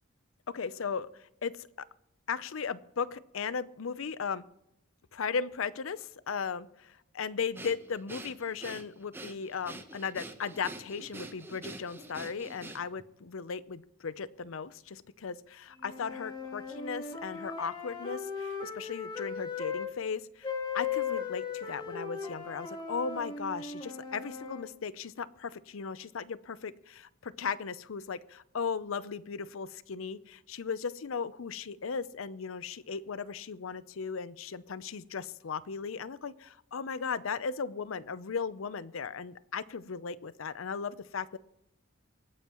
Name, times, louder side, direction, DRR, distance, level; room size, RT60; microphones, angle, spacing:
voice 1, 0.5-1.9 2.3-4.4 5.1-41.4, left 5 dB, 80° left, 17 dB, 0.6 m, -37 dB
Breathing, 7.5-13.1, right 2 dB, 10° right, 0.8 m, -45 dB
sound 1, 15.8-19.9 20.4-24.7, left 6 dB, 25° left, 2.2 m, -37 dB
25.0 x 9.1 x 3.0 m, 0.84 s
head